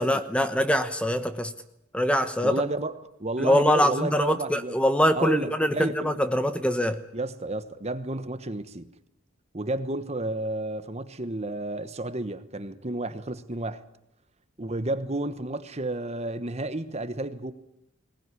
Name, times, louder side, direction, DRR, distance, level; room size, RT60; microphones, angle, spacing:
voice 1, 0.0-1.5 1.9-2.6 3.4-7.0, equal, 5° left, 1.0 m, -23 dB
voice 2, 2.4-4.8 5.1-6.2 7.1-8.9 9.5-13.8 14.6-17.5, right 2 dB, 30° right, 1.2 m, -31 dB
20.5 x 19.0 x 9.8 m
head